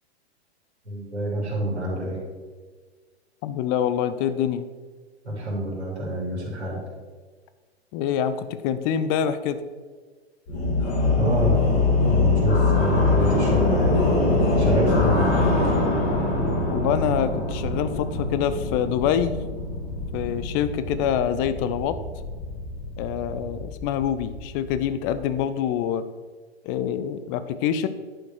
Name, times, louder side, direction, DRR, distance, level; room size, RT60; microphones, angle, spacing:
voice 1, 0.8-2.2 5.2-6.8 11.2-11.6 12.0-14.0 14.6-15.3, right 1 dB, 85° right, -4 dB, 2.9 m, -27 dB
voice 2, 3.4-4.7 7.9-9.6 16.7-19.4 20.1-22.0 23.0-26.0 26.6-27.9, left 9 dB, 20° left, 12 dB, 0.3 m, -25 dB
sound 1, 10.5-25.4, left 2 dB, 45° left, 2.8 m, -23 dB
11.0 x 5.2 x 4.6 m, 1.5 s
figure-of-eight pair, 105°, 32 cm